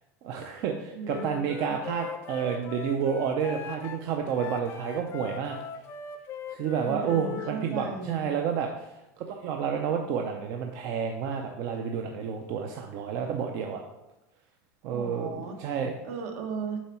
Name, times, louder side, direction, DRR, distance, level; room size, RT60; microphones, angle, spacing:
voice 1, 0.2-5.6 6.5-8.9 9.3-13.8 14.8-15.3 15.6-16.0, right 7 dB, 40° right, 3 dB, 0.5 m, -30 dB
voice 2, 0.9-1.5 6.8-8.3 14.9-16.8, right 4 dB, 65° right, 3 dB, 1.3 m, -36 dB
Wind instrument woodwind instrument, 1.0-7.6, left 6 dB, 30° left, 0.5 m, -40 dB
7.2 x 4.5 x 4.3 m, 0.96 s
supercardioid pair, 165°, 9 cm